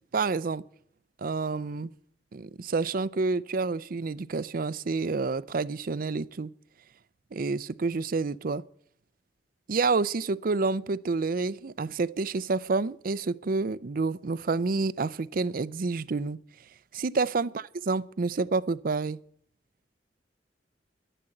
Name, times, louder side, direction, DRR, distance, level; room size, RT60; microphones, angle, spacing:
voice 1, 0.1-0.6 1.2-1.9 2.3-6.5 7.3-8.6 9.7-16.4 16.9-19.2, right 4 dB, 50° right, 0.5 m, -29 dB
11.0 x 11.0 x 7.8 m
head